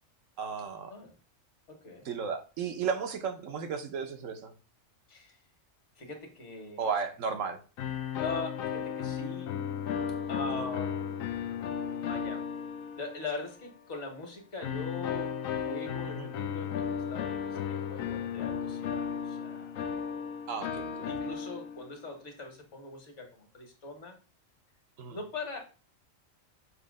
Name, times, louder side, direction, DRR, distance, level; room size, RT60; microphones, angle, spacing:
voice 1, 0.4-0.9 2.0-4.5 6.8-7.6 10.5-10.7 16.1-16.3 20.5-20.9 25.0-25.2, right 6 dB, 75° right, 7 dB, 1.2 m, -34 dB
voice 2, 1.7-2.1 5.1-5.4 6.0-6.8 8.2-9.5 10.3-11.4 12.1-12.4 13.0-15.3 15.6-19.7 21.1-24.2 25.1-25.6, left 3 dB, 60° left, 4 dB, 1.7 m, -41 dB
sound 1, 7.8-13.6 14.6-22.0, left 7 dB, 80° left, 1.0 m, -35 dB
6.4 x 2.8 x 5.2 m, 0.35 s
omnidirectional pair, 1.4 m